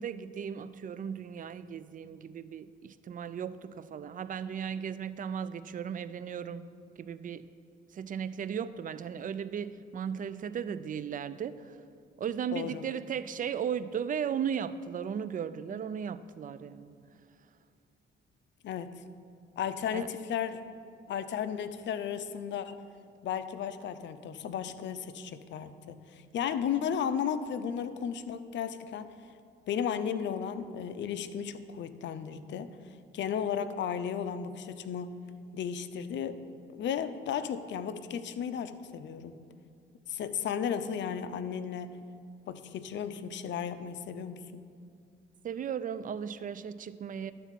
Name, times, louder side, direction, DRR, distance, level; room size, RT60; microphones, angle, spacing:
voice 1, 0.0-6.7 7.0-7.5 7.9-11.8 12.2-16.9 19.9-20.1 45.4-47.3, right 8 dB, 45° right, 14 dB, 0.4 m, -36 dB
voice 2, 12.5-12.8 18.6-18.9 19.6-20.6 21.1-22.8 23.2-29.1 29.7-32.7 33.1-35.1 35.5-36.4 36.7-39.4 40.1-41.9 42.5-44.6, left 8 dB, 65° left, 12 dB, 0.6 m, -34 dB
11.5 x 4.1 x 7.4 m, 2.3 s
cardioid pair, 90°, 20 cm